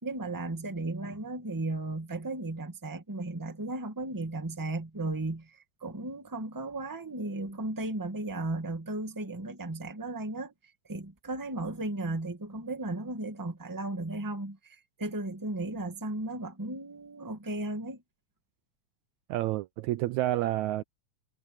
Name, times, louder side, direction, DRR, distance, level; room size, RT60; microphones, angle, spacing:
voice 1, 0.0-10.5 10.9-18.0, right 2 dB, 10° right, 1.3 m, -35 dB
voice 2, 19.3-20.8, right 15 dB, 80° right, 1.8 m, -29 dB
omnidirectional pair, 3.7 m